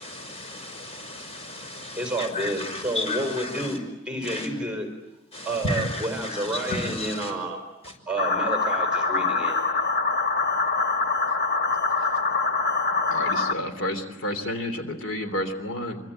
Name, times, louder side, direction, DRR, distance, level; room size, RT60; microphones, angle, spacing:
voice 1, 0.0-3.8 4.2-4.5 5.3-7.3 7.8-7.9, left 2 dB, 30° left, 5.7 m, -33 dB
voice 2, 1.9-4.9 5.4-7.6 8.1-9.6, right 1 dB, 5° right, 4.2 m, -30 dB
sound 1, 8.2-13.5, left 3 dB, 50° left, 1.5 m, -24 dB
voice 3, 13.1-16.0, left 1 dB, 70° left, 3.2 m, -30 dB
26.5 x 25.0 x 9.0 m
head